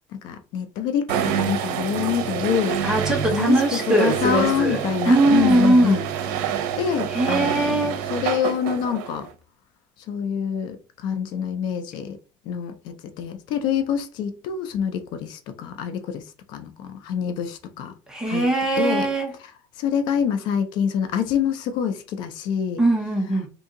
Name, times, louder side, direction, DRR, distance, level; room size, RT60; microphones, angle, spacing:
voice 1, 0.1-2.9 3.3-6.0 6.8-9.3 10.1-12.2 12.5-17.9 18.3-18.5 18.8-19.1 19.4-19.5 19.8-22.8, left 8 dB, 50° left, 0.4 m, -26 dB
sound 1, 1.1-9.3, right 8 dB, 90° right, 0.6 m, -27 dB
voice 2, 2.8-4.8 5.1-6.0 7.1-8.1 18.1-19.3 22.8-23.5, right 2 dB, 5° right, 0.7 m, -20 dB
2.7 x 2.7 x 3.6 m
cardioid pair, 175°, 10 cm